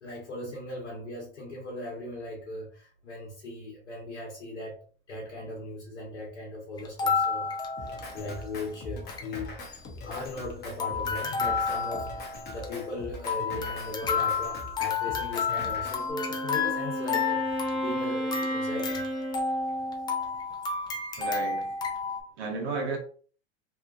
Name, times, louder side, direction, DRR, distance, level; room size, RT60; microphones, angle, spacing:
voice 1, 0.0-4.8 5.1-7.5 7.8-9.6 10.0-19.0, left 1 dB, 85° left, 1.0 m, -38 dB
sound 1, 6.8-8.5 8.7-8.8 9.0-9.3 9.7-10.5 10.8-22.2, left 5 dB, 15° left, 0.3 m, -31 dB
Drum kit, 7.8-16.1, left 2 dB, 30° left, 0.7 m, -42 dB
Wind instrument woodwind instrument, 15.9-20.2, right 1 dB, 35° right, 1.0 m, -33 dB
voice 2, 21.2-23.0, right 3 dB, 70° right, 1.1 m, -34 dB
2.9 x 2.2 x 2.3 m
hypercardioid pair, 95°, 34 cm